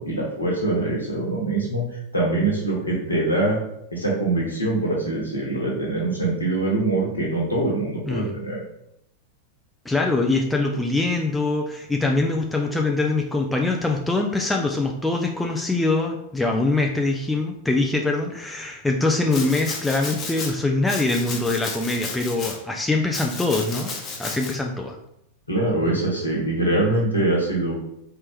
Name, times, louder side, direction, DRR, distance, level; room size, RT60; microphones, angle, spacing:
voice 1, 0.0-3.6 3.9-8.6 25.5-27.7, right 2 dB, 80° left, -3 dB, 1.1 m, -23 dB
voice 2, 9.9-23.9 24.2-25.0, left 2 dB, 5° left, 1 dB, 0.4 m, -23 dB
Domestic sounds home sounds, 19.3-20.5 20.9-22.6 23.1-24.5, left 4 dB, 30° left, 0.9 m, -33 dB
4.2 x 3.0 x 3.5 m, 0.79 s
figure-of-eight pair, 90°, 0 cm